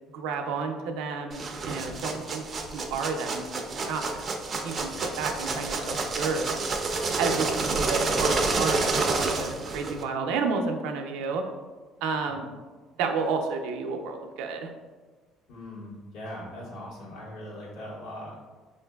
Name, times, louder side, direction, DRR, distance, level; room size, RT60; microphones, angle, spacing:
voice 1, 0.1-2.5 2.7-4.2 4.6-6.7 7.2-11.4 12.0-12.5 13.0-14.7, right 4 dB, 90° right, 4 dB, 0.4 m, -31 dB
sound 1, 1.3-10.0, right 3 dB, 30° right, 0.4 m, -29 dB
voice 2, 15.5-18.4, left 1 dB, 70° left, -5 dB, 1.2 m, -40 dB
5.6 x 2.5 x 2.3 m, 1.4 s
cardioid pair, 145°, 0 cm